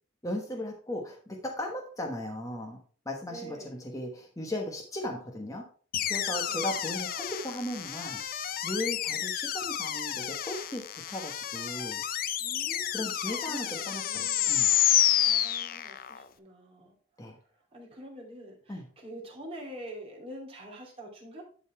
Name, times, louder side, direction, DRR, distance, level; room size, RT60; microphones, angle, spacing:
voice 1, 0.2-2.8 3.0-5.7 6.1-8.2 8.6-12.0 12.9-14.7 17.2-17.4 18.7-18.9, left 1 dB, 15° left, 1 dB, 1.1 m, -37 dB
voice 2, 3.3-3.7 6.2-6.7 9.1-9.2 12.4-13.6 13.9-14.6 15.2-16.9 17.7-21.4, right 1 dB, 30° right, -1 dB, 2.7 m, -46 dB
sound 1, 5.9-16.2, left 11 dB, 50° left, 0.5 m, -29 dB
11.0 x 4.1 x 4.3 m, 0.43 s
head